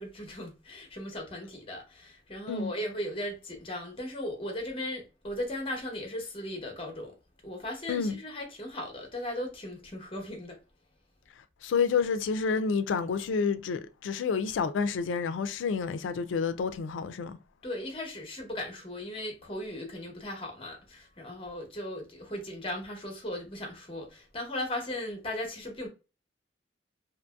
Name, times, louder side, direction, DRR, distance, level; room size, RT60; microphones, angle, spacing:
voice 1, 0.0-7.1 7.4-10.6 17.6-25.9, left 1 dB, 30° left, 0.8 m, -37 dB
voice 2, 7.9-8.2 11.6-17.4, left 5 dB, 80° left, 0.3 m, -29 dB
2.8 x 2.6 x 2.2 m
head